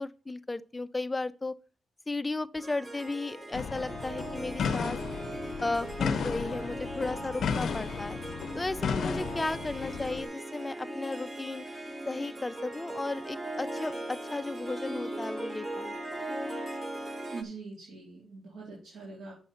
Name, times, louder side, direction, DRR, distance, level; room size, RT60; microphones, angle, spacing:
voice 1, 0.0-1.6 2.1-5.0 5.6-8.2 8.5-11.6 12.1-16.0, left 2 dB, 15° left, 0.4 m, -34 dB
Harp, 2.6-17.4, right 1 dB, 15° right, 1.0 m, -39 dB
sound 1, 3.5-10.2, left 6 dB, 65° left, 0.6 m, -34 dB
voice 2, 17.3-19.3, right 4 dB, 80° right, 3.3 m, -43 dB
7.0 x 5.5 x 5.7 m
wide cardioid pair, 140°, 0 cm